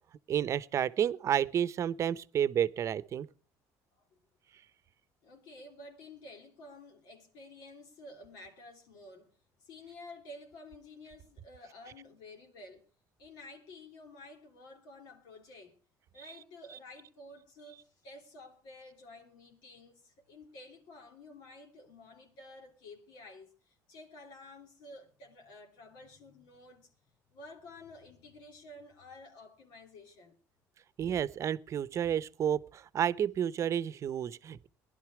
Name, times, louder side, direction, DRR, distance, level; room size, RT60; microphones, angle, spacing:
voice 1, 0.3-3.3 31.0-34.7, right 9 dB, 45° right, 0.8 m, -31 dB
voice 2, 5.2-9.3 9.6-12.8 13.2-15.8 16.1-26.9 27.3-30.4, left 2 dB, 80° left, 3.3 m, -52 dB
18.5 x 11.5 x 4.8 m
cardioid pair, 110°, 7 cm